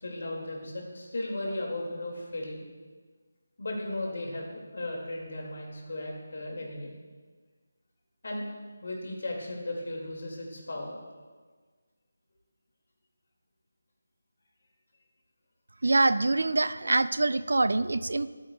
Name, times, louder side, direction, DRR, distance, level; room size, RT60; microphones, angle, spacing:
voice 1, 0.0-2.6 3.6-6.9 8.2-8.5 8.8-11.0, left 1 dB, 60° left, 0 dB, 2.4 m, -36 dB
voice 2, 15.8-18.3, right 2 dB, 75° right, 14 dB, 0.4 m, -25 dB
12.5 x 8.8 x 2.4 m, 1.4 s
figure-of-eight pair, 170°, 0 cm